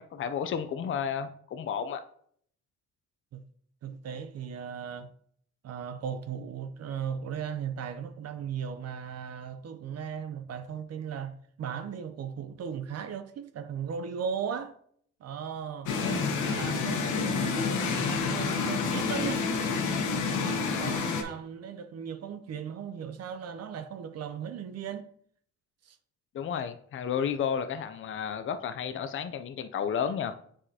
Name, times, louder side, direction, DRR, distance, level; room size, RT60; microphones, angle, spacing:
voice 1, 0.0-2.0 26.3-30.5, left 7 dB, 45° left, 0.5 m, -32 dB
voice 2, 3.8-5.1 5.6-14.7 15.2-15.9 16.4-19.5 20.1-25.1 25.8-26.0, right 7 dB, 55° right, 0.7 m, -37 dB
sound 1, 15.9-21.2, left 4 dB, 85° left, 1.0 m, -28 dB
7.5 x 4.9 x 2.8 m
cardioid pair, 90°, 30 cm